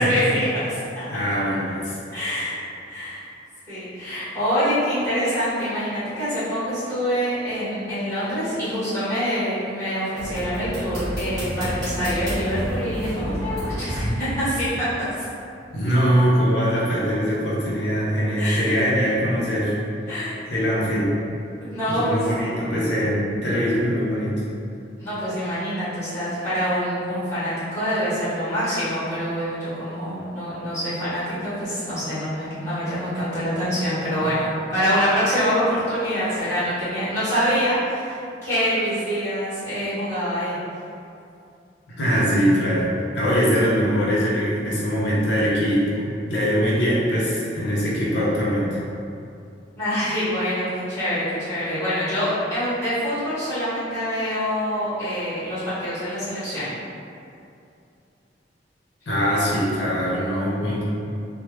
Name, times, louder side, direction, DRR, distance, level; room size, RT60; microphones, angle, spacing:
voice 1, 0.0-1.0 2.1-2.6 2.9-3.2 3.7-15.3 18.4-18.8 20.1-20.3 21.6-22.3 25.0-40.6 49.8-56.7, equal, 15° left, -13 dB, 1.5 m, -25 dB
voice 2, 1.1-2.0 15.7-19.7 20.5-21.1 21.9-24.3 42.0-48.7 59.1-60.8, equal, 70° left, -7 dB, 0.7 m, -22 dB
sound 1, 10.2-14.0, equal, 20° right, 1.2 m, -29 dB
3.3 x 2.2 x 3.1 m, 2.6 s
head